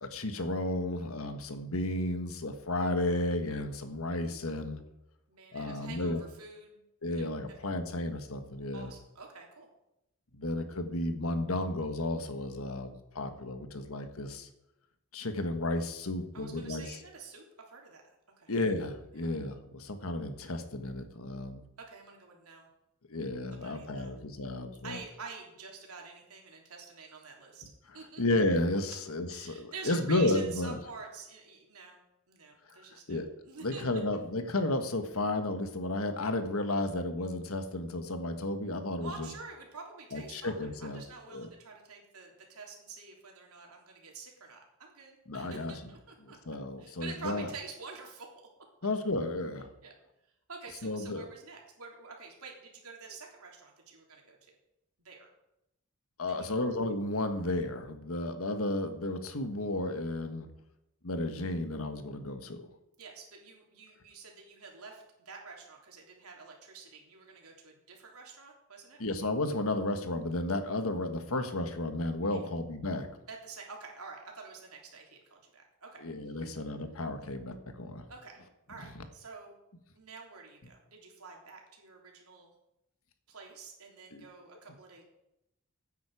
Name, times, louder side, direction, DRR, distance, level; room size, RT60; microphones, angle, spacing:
voice 1, 0.0-4.8 5.5-6.2 7.0-8.9 10.3-14.5 15.1-17.0 18.5-21.6 23.1-25.0 28.2-30.8 32.7-33.3 33.6-39.3 40.1-41.0 41.3-41.5 45.3-45.7 46.2-47.5 48.8-49.7 50.8-51.3 56.2-60.5 61.0-62.7 69.0-73.1 76.0-78.1 78.9-79.0 84.1-84.2, left 2 dB, 70° left, 8 dB, 1.5 m, -33 dB
voice 2, 5.3-6.8 8.7-9.7 16.3-18.1 18.4-18.5 19.2-19.3 21.9-22.7 23.5-24.1 24.8-27.6 27.9-28.2 28.9-29.0 29.3-32.0 32.3-33.8 39.0-46.4 46.8-48.3 49.8-49.9 50.5-54.4 55.0-55.3 56.4-56.7 63.0-69.0 72.3-72.5 73.3-76.0 76.4-76.5 78.1-78.4 78.7-79.5 79.9-82.5 83.3-85.0, right 4 dB, 90° right, 0 dB, 3.3 m, -48 dB
16.0 x 9.3 x 4.9 m, 0.88 s
head